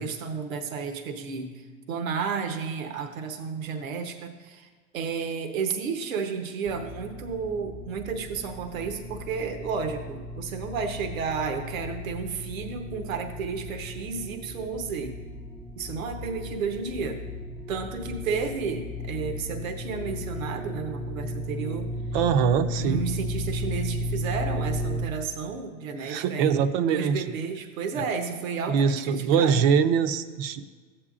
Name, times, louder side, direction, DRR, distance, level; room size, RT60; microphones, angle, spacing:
voice 1, 0.0-4.7 4.9-15.2 15.7-17.2 17.7-21.9 22.8-29.6, right 5 dB, 90° right, 6 dB, 0.9 m, -32 dB
sound 1, 6.7-25.1, equal, 5° left, 0.5 m, -35 dB
voice 2, 22.1-23.0 26.0-27.2 27.9-28.1 28.7-30.6, right 7 dB, 50° right, 11 dB, 0.6 m, -23 dB
14.0 x 8.7 x 2.4 m, 1.5 s
supercardioid pair, 125°, 39 cm